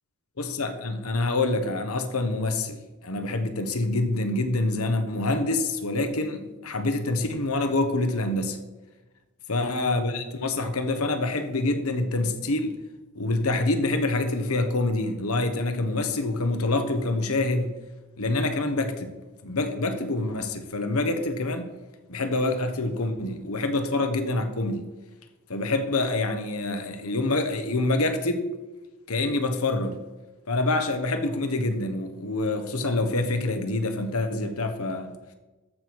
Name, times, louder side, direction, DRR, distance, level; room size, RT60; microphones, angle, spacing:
voice 1, 0.4-8.6 9.5-12.7 13.1-17.7 18.2-19.2 19.4-21.7 22.1-24.8 25.5-28.5 29.1-30.0 30.5-35.1, left 2 dB, 80° left, 7 dB, 1.2 m, -26 dB
14.0 x 6.1 x 4.8 m, 1.1 s
head